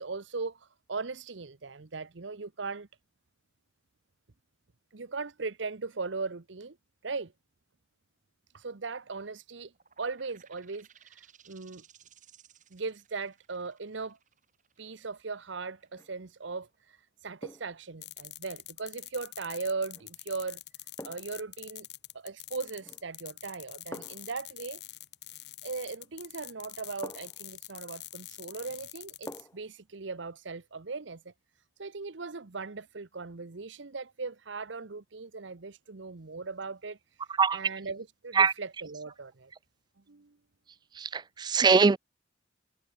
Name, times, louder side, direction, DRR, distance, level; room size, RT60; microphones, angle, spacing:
voice 1, 0.0-2.9 4.9-6.8 7.0-7.3 8.5-9.7 10.0-11.8 12.7-14.2 14.8-20.6 21.0-21.9 22.1-24.8 25.6-31.3 31.8-39.5 40.1-40.3, right 4 dB, 70° right, 0.9 m, -38 dB
sound 1, 9.7-17.1, right 8 dB, 40° right, 6.5 m, -60 dB
sound 2, 15.8-16.2 17.4-17.8 19.9-20.1 21.0-21.4 22.8-23.2 23.9-24.4 26.0-26.1 27.0-27.5 29.3-29.7 30.1-30.2, left 1 dB, 15° left, 5.5 m, -46 dB
sound 3, 18.0-29.4, left 15 dB, 60° left, 4.3 m, -46 dB
voice 2, 41.0-42.0, right 5 dB, 20° right, 0.3 m, -22 dB
head